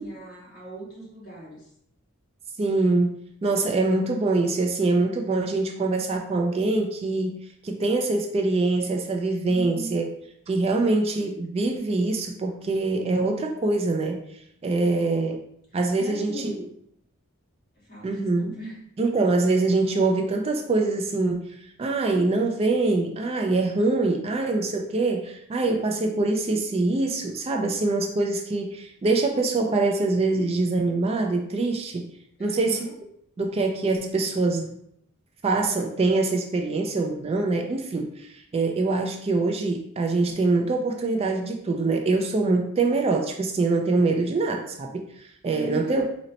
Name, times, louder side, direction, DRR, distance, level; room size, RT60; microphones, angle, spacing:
voice 1, 0.0-1.7 9.5-10.0 14.8-15.2 15.9-16.6 17.9-18.8 32.4-32.9 45.5-46.1, right 1 dB, 45° left, -6 dB, 1.5 m, -38 dB
voice 2, 2.6-3.1 3.4-7.3 7.6-10.1 10.5-14.2 14.6-15.4 15.7-16.5 18.0-18.5 19.0-21.5 21.8-32.1 32.4-32.9 33.4-34.8 35.4-46.0, right 3 dB, 30° right, 2 dB, 0.3 m, -24 dB
3.9 x 2.1 x 4.0 m, 0.72 s
head